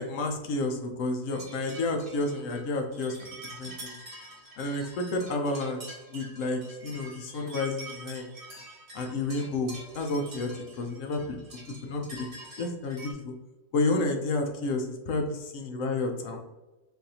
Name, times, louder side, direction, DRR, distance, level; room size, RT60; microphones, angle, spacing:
voice 1, 0.0-4.0 4.6-8.3 8.9-10.5 10.8-12.3 12.6-13.3 13.7-16.4, left 2 dB, 70° left, 3 dB, 0.8 m, -31 dB
sound 1, 1.3-13.1, right 1 dB, 40° right, 1.2 m, -46 dB
3.9 x 2.6 x 2.7 m, 1.1 s
omnidirectional pair, 1.7 m